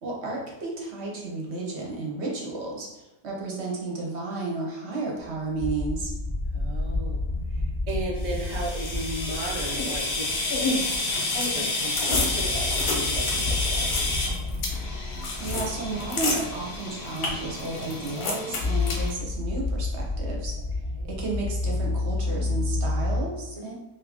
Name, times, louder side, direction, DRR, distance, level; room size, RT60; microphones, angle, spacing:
voice 1, 0.0-6.1 15.4-20.6 21.1-23.7, right 3 dB, 55° right, -2 dB, 0.9 m, -32 dB
sound 1, 5.3-11.5 11.9-17.2 17.4-17.6 18.6-23.2, left 2 dB, 25° left, 0.5 m, -30 dB
voice 2, 6.5-10.3 11.5-14.2 20.9-21.1 23.6-23.7, right 2 dB, 70° right, -2 dB, 0.4 m, -35 dB
sound 2, 8.2-19.1, left 2 dB, 90° left, 1.3 m, -29 dB
2.8 x 2.5 x 3.5 m, 1.0 s
omnidirectional pair, 1.6 m